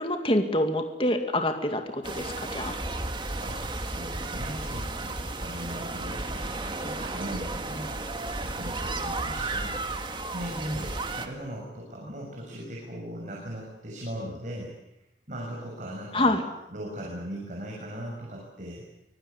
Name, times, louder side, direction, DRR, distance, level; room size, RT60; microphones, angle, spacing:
voice 1, 0.0-2.8 16.1-16.4, left 1 dB, 30° left, 5 dB, 2.3 m, -26 dB
sound 1, 2.0-11.3, right 2 dB, 25° right, 2.1 m, -33 dB
voice 2, 3.4-8.0 8.4-9.8 10.3-14.7 15.3-16.4 16.7-18.8, equal, 45° right, -2 dB, 6.7 m, -38 dB
25.0 x 23.0 x 8.4 m, 0.85 s
head